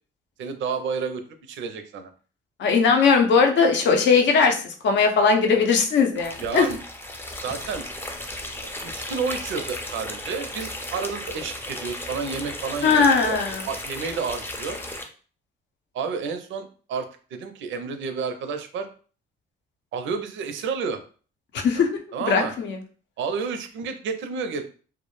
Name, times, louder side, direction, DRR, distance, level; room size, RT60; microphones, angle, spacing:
voice 1, 0.4-1.2 1.5-2.1 6.4-6.8 7.4-7.9 8.4-14.8 15.9-18.9 19.9-21.0 21.7-21.8 22.1-22.5 23.2-24.6, right 5 dB, 75° right, 8 dB, 0.5 m, -30 dB
voice 2, 2.6-4.6 4.8-6.7 12.8-13.6 21.6-21.9 22.3-22.8, left 5 dB, 65° left, 4 dB, 0.6 m, -19 dB
sound 1, 6.2-15.0, left 1 dB, 10° left, 0.4 m, -35 dB
2.2 x 2.0 x 3.0 m, 0.40 s
cardioid pair, 90°, 20 cm